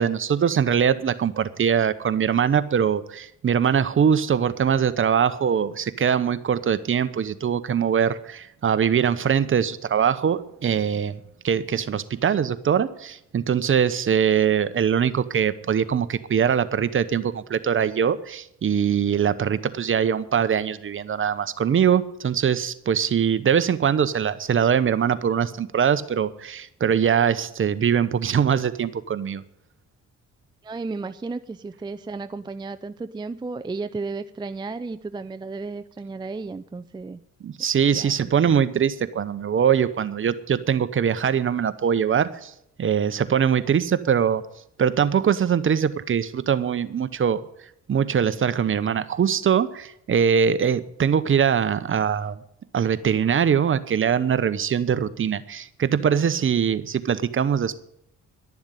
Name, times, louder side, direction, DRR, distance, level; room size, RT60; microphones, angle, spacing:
voice 1, 0.0-11.2 11.4-29.4 37.4-42.5 42.8-44.4 44.8-47.4 47.9-52.3 52.7-57.8, right 8 dB, 40° right, 13 dB, 0.9 m, -22 dB
voice 2, 30.6-37.2 37.9-38.3, right 3 dB, 15° right, 11 dB, 0.5 m, -33 dB
11.5 x 7.2 x 9.9 m, 0.75 s
cardioid pair, 90°, 30 cm